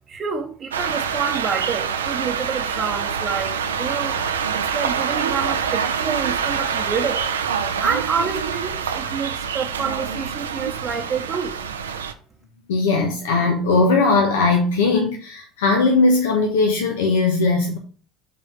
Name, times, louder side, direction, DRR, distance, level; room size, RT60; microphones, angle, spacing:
voice 1, 0.1-7.3 7.8-11.5, right 6 dB, 40° right, 0.9 m, -28 dB
sound 1, 0.7-12.1, right 7 dB, 80° right, 0.5 m, -25 dB
voice 2, 12.7-17.8, left 3 dB, 75° left, 1.0 m, -19 dB
5.3 x 4.0 x 5.9 m
figure-of-eight pair, 70°, 0 cm